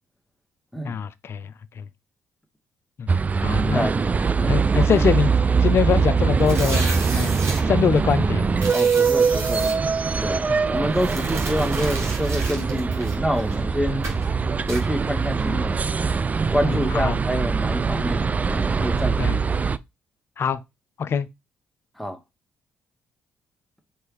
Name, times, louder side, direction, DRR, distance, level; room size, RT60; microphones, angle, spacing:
voice 1, 0.8-1.8 3.0-3.1 3.4-3.9 4.5-5.3 5.6-6.9 7.1-7.3 7.7-8.4 10.5-10.6 16.6-17.2 19.2-19.4 20.4-20.6 21.0-21.3, left 7 dB, 50° left, 0.5 m, -23 dB
sound 1, 3.1-19.8, right 5 dB, 30° right, 0.3 m, -22 dB
sound 2, 6.4-7.6 8.6-9.7 10.9-13.6 14.0-14.3 14.7-14.8, right 3 dB, 65° right, 2.0 m, -33 dB
voice 2, 8.7-9.7 10.2-14.1 14.7-15.9 16.5-19.4 22.0-22.2, equal, ahead, 1.2 m, -27 dB
4.5 x 3.2 x 3.2 m
hypercardioid pair, 45°, 5 cm